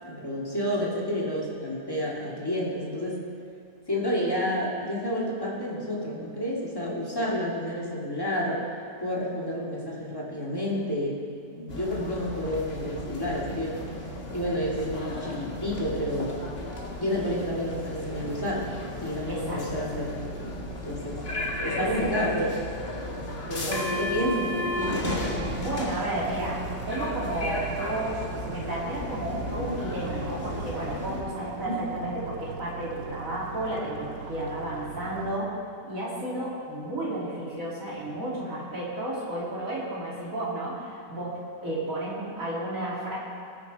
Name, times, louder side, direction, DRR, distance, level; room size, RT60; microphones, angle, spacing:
voice 1, 0.0-3.2 3.9-8.6 9.0-11.2 11.6-13.7 14.3-16.4 17.0-18.8 19.0-20.6 20.8-21.2 21.6-22.5 23.5-25.4 31.6-31.8, equal, 10° left, -5 dB, 2.5 m, -30 dB
sound 1, 11.7-31.2, left 1 dB, 35° left, 1.9 m, -34 dB
voice 2, 19.3-19.6 21.8-22.1 25.5-35.5 35.8-43.2, right 1 dB, 45° right, -7 dB, 3.6 m, -32 dB
sound 2, 25.4-35.4, right 6 dB, 60° right, 1.1 m, -41 dB
19.5 x 9.8 x 4.2 m, 2.5 s
omnidirectional pair, 1.9 m